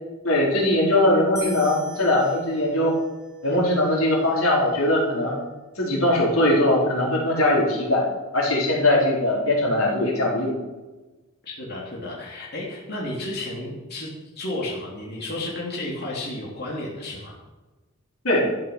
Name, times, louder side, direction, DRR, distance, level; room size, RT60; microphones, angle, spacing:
voice 1, 0.2-2.9 3.4-5.3 5.8-8.1 8.3-10.5 18.2-18.5, left 1 dB, 75° left, -3 dB, 4.3 m, -21 dB
sound 1, 1.4-4.6, equal, 15° left, 2.3 m, -41 dB
voice 2, 11.4-17.4, left 1 dB, 45° left, -5 dB, 3.3 m, -32 dB
13.0 x 10.5 x 6.2 m, 1.2 s
head